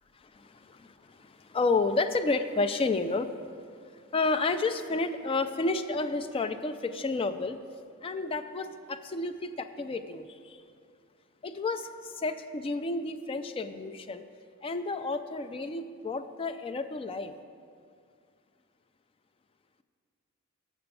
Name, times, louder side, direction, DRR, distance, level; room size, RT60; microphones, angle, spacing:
voice 1, 0.2-3.3 4.1-7.6 8.0-10.6 11.4-14.2 14.6-17.3, left 3 dB, 25° left, 9 dB, 0.3 m, -31 dB
6.8 x 6.0 x 6.7 m, 2.3 s
head